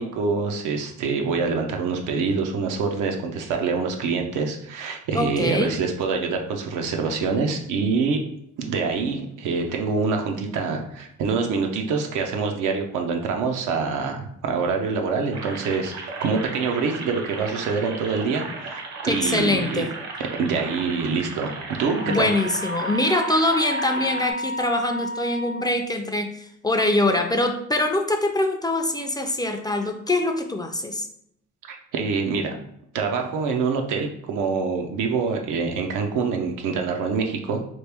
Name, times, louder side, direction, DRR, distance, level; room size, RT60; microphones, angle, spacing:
voice 1, 0.0-8.2 8.6-19.8 20.4-22.3 31.6-32.6 32.9-37.7, right 4 dB, 85° right, 3 dB, 0.6 m, -25 dB
voice 2, 5.1-5.7 19.0-19.9 22.1-31.1, left 2 dB, 15° left, 5 dB, 0.3 m, -23 dB
sound 1, 15.3-24.3, right 3 dB, 65° right, 0.9 m, -36 dB
Wind instrument woodwind instrument, 22.0-25.9, equal, 65° left, 0.6 m, -31 dB
3.1 x 2.4 x 3.4 m, 0.72 s
cardioid pair, 90°, 30 cm